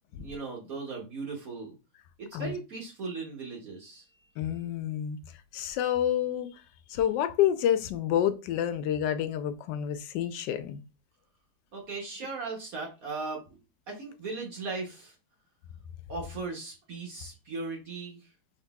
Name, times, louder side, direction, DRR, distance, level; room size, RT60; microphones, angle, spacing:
voice 1, 0.2-1.8 2.2-4.1 11.7-13.4 13.9-15.2 16.1-18.3, right 3 dB, 55° right, 1.3 m, -38 dB
voice 2, 4.4-5.2 5.5-6.5 6.9-10.8, left 10 dB, 75° left, 1.2 m, -28 dB
5.2 x 3.7 x 2.3 m
omnidirectional pair, 2.0 m